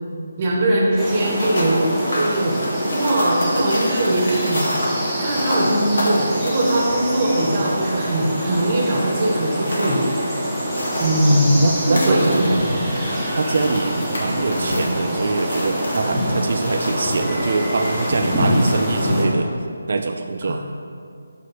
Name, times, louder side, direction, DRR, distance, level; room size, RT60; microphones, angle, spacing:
voice 1, 0.4-2.6 2.9-4.6 5.2-10.2 11.0-11.6 11.9-12.6 20.5-20.6, right 1 dB, 35° right, -3 dB, 1.6 m, -20 dB
sound 1, 1.0-19.2, equal, 5° right, 1.6 m, -25 dB
sound 2, 1.3-19.5, left 1 dB, 70° left, 1.9 m, -31 dB
voice 2, 11.3-12.6 13.3-19.5 19.9-20.6, right 3 dB, 55° right, 6 dB, 0.4 m, -24 dB
6.6 x 5.3 x 5.1 m, 2.3 s
figure-of-eight pair, 155°, 0 cm